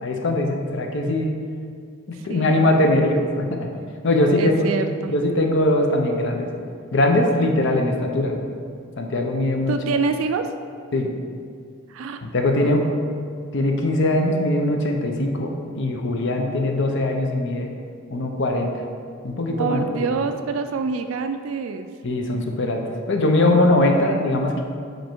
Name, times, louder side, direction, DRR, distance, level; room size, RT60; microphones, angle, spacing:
voice 1, 0.0-1.3 2.1-3.7 4.0-4.7 5.1-6.5 6.9-8.5 9.0-9.8 10.9-11.1 12.2-12.9 13.5-17.7 18.1-18.8 19.2-19.8 22.0-22.8 23.1-24.6, left 1 dB, 55° left, 3 dB, 0.6 m, -21 dB
voice 2, 2.1-3.0 4.4-5.1 9.7-10.5 11.9-12.2 19.6-21.9, right 4 dB, 70° right, 7 dB, 0.3 m, -26 dB
5.3 x 4.5 x 4.5 m, 2.2 s
head